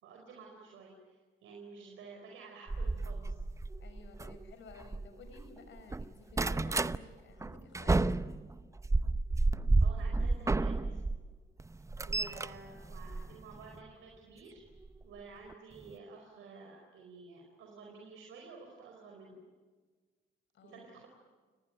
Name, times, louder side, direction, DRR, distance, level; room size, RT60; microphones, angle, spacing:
voice 1, 0.0-3.4 9.8-11.0 12.0-14.6 15.0-19.4 20.6-21.1, right 4 dB, 85° right, 1 dB, 4.6 m, -51 dB
sound 1, 2.7-5.5 5.8-7.0 7.4-11.2 11.6-13.8 14.8-15.0 15.5-15.6 15.8-15.9, right 3 dB, 15° right, 0.7 m, -31 dB
voice 2, 3.8-8.0 20.5-20.9, left 4 dB, 70° left, 8 dB, 5.8 m, -54 dB
29.5 x 19.5 x 9.0 m, 1.4 s
cardioid pair, 90°, 20 cm